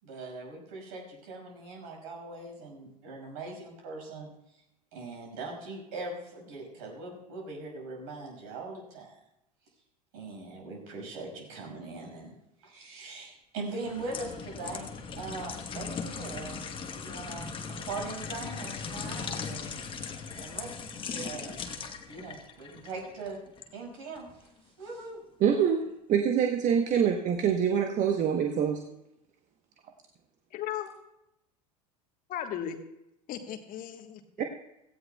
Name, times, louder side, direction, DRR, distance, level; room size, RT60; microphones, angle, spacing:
voice 1, 0.0-4.6 4.9-9.2 10.1-12.3 12.6-14.9 15.2-19.7 20.3-20.7 21.2-21.6 22.1-23.4 23.7-25.2, right 3 dB, 65° right, 0 dB, 5.7 m, -41 dB
sound 1, 13.8-23.7 24.2-24.3, left 5 dB, 25° left, 1.1 m, -39 dB
voice 2, 25.4-28.8 34.4-34.5, right 8 dB, 40° right, 5 dB, 1.0 m, -25 dB
voice 3, 30.5-30.9 32.3-32.8 33.3-34.2, left 10 dB, 45° left, 6 dB, 1.4 m, -36 dB
17.0 x 15.5 x 2.3 m, 0.86 s
hypercardioid pair, 80°, 20 cm